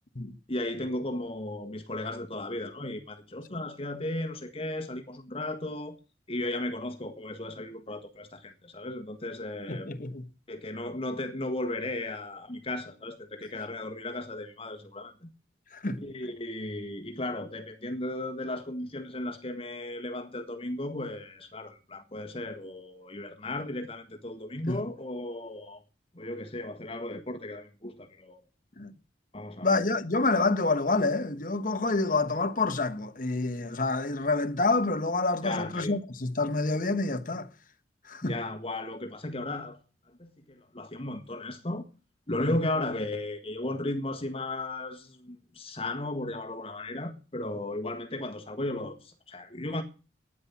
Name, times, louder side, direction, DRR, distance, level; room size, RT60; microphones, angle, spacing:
voice 1, 0.5-6.0 6.3-9.9 10.5-15.3 16.0-25.8 26.1-28.4 29.3-29.8 35.4-36.0 38.2-39.8 40.2-41.9 42.3-49.8, left 1 dB, 35° left, 1.6 m, -35 dB
voice 2, 9.7-10.2 15.7-16.1 24.7-24.8 28.8-28.9 29.6-37.5 38.1-38.4 42.5-42.6, left 3 dB, 50° left, 1.1 m, -28 dB
12.5 x 9.8 x 7.2 m
head